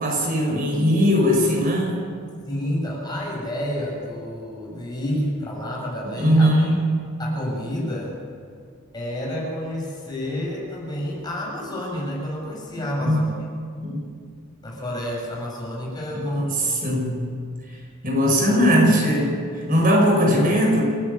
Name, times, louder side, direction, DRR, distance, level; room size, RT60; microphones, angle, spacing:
voice 1, 0.0-2.0 6.2-6.8 13.0-13.2 13.8-14.0 16.1-17.1 17.7-20.8, equal, 45° right, 0 dB, 5.3 m, -20 dB
voice 2, 2.5-6.5 7.2-8.1 8.9-13.3 14.6-16.5 19.8-20.1, equal, 20° left, -3 dB, 6.9 m, -29 dB
29.5 x 12.0 x 8.8 m, 2.1 s
head